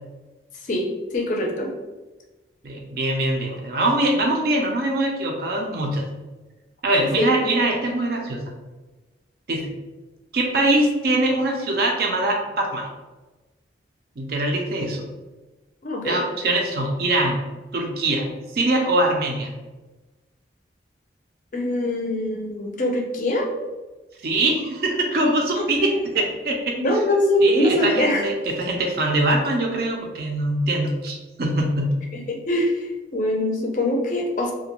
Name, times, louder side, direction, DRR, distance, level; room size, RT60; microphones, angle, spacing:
voice 1, 0.6-1.7 7.0-7.3 15.8-16.2 21.5-23.5 25.6-25.7 26.8-28.3 32.1-34.5, left 1 dB, 45° left, 0 dB, 0.4 m, -23 dB
voice 2, 2.6-6.1 6.8-8.4 9.5-9.7 10.3-12.9 14.2-15.1 16.0-17.4 17.7-18.3 18.5-19.5 24.2-26.8 27.4-32.0, right 1 dB, 55° right, 1 dB, 0.4 m, -23 dB
2.4 x 2.2 x 2.9 m, 1.2 s
head